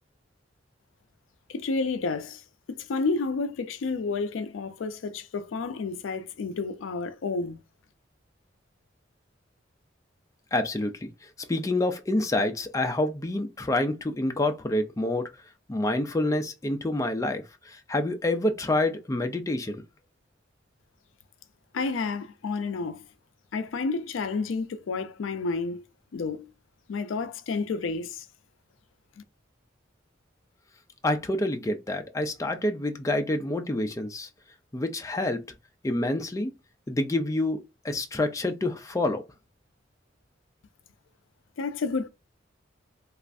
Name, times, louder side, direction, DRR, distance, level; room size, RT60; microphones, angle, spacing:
voice 1, 1.5-2.4 2.7-7.6 21.7-23.0 23.5-25.8 26.1-26.5 26.9-28.2 41.6-42.1, left 4 dB, 85° left, 0.4 m, -30 dB
voice 2, 10.5-11.1 11.5-15.3 15.7-19.8 31.0-34.3 34.7-35.4 35.8-36.5 36.9-39.2, left 2 dB, 15° left, 0.4 m, -27 dB
3.2 x 2.4 x 2.5 m
head